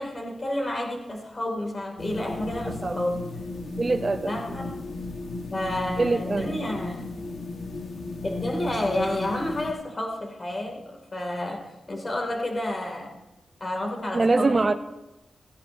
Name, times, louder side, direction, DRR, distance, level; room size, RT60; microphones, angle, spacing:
voice 1, 0.0-3.2 4.2-4.8 5.5-7.3 8.2-13.2 13.6-14.7, left 1 dB, 30° left, 2 dB, 2.2 m, -30 dB
sound 1, 2.0-9.7, left 2 dB, 65° left, 1.3 m, -35 dB
voice 2, 2.7-3.0 3.8-4.3 6.0-6.6 14.1-14.7, right 3 dB, 35° right, 7 dB, 0.5 m, -23 dB
15.5 x 15.0 x 2.6 m, 0.96 s
wide cardioid pair, 130°, 0 cm